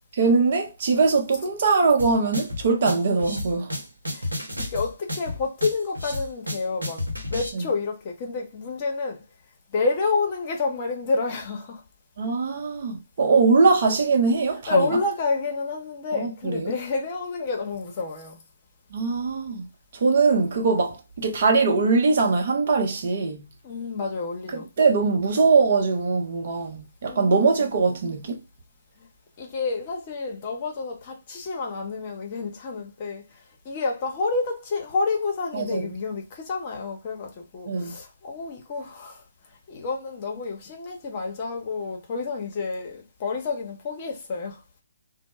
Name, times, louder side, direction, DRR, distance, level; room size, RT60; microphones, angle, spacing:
voice 1, 0.1-3.7 7.6-7.7 12.2-14.9 16.1-16.7 18.9-19.7 19.9-23.4 24.5-28.4 35.5-35.9 37.7-38.0, right 4 dB, 50° right, 0.7 m, -22 dB
sound 1, 2.0-7.5, left 1 dB, 85° right, 0.8 m, -32 dB
voice 2, 4.6-9.2 9.7-11.8 14.7-18.4 23.6-24.7 27.0-27.7 29.0-29.1 29.4-44.6, left 4 dB, 35° left, 0.7 m, -29 dB
2.1 x 2.0 x 2.9 m
figure-of-eight pair, 135°, 0 cm